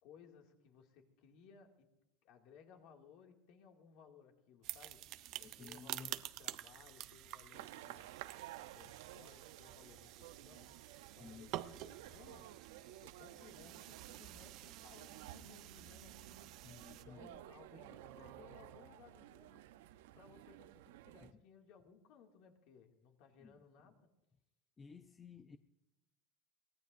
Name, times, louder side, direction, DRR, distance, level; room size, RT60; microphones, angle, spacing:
voice 1, 0.0-1.9 2.2-5.1 5.4-8.1 8.5-12.5 12.8-16.3 16.8-24.1, left 6 dB, 50° left, 2.3 m, -62 dB
sound 1, 4.6-17.0, right 15 dB, 45° right, 0.6 m, -50 dB
voice 2, 5.4-6.1 11.2-11.5 16.6-17.3 21.2-21.3 23.4-23.6 24.8-25.6, left 5 dB, 15° left, 0.5 m, -54 dB
sound 2, 7.5-21.3, right 14 dB, 85° right, 0.6 m, -54 dB
sound 3, 13.3-16.5 17.3-17.4 17.7-18.9, right 10 dB, 60° right, 1.0 m, -60 dB
23.5 x 19.0 x 2.6 m
cardioid pair, 165°, 0 cm